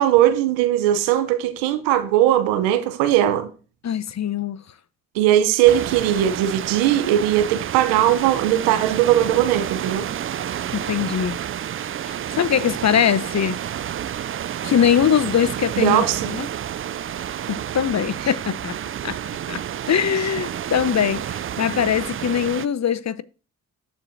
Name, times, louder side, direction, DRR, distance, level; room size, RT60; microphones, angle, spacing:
voice 1, 0.0-3.5 5.1-10.1 15.7-16.3, right 12 dB, 90° right, 0.8 m, -19 dB
voice 2, 3.8-4.6 10.7-11.4 12.0-13.6 14.6-16.5 17.5-18.8 19.0-19.2 19.5-19.6 19.9-23.2, left 8 dB, 40° left, 0.7 m, -22 dB
sound 1, 5.6-22.7, right 10 dB, 30° right, 0.4 m, -30 dB
13.0 x 4.5 x 2.6 m
hypercardioid pair, 45°, 43 cm